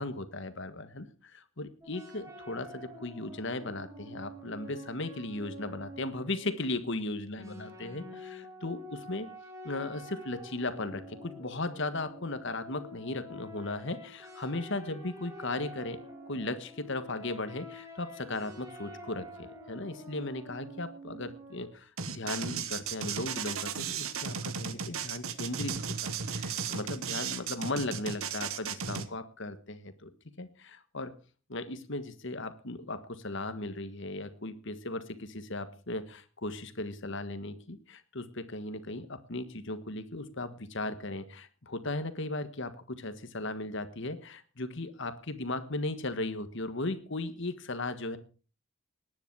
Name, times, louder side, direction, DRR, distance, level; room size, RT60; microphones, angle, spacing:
voice 1, 0.0-9.3 9.6-16.0 16.3-25.7 26.0-30.1 30.4-31.1 31.5-48.2, left 2 dB, 55° left, 11 dB, 1.5 m, -37 dB
sound 1, 1.8-6.9 7.4-21.7, equal, 15° right, 3.0 m, -48 dB
sound 2, 22.0-29.1, right 6 dB, 75° right, 1.3 m, -35 dB
18.5 x 10.0 x 4.7 m, 0.37 s
head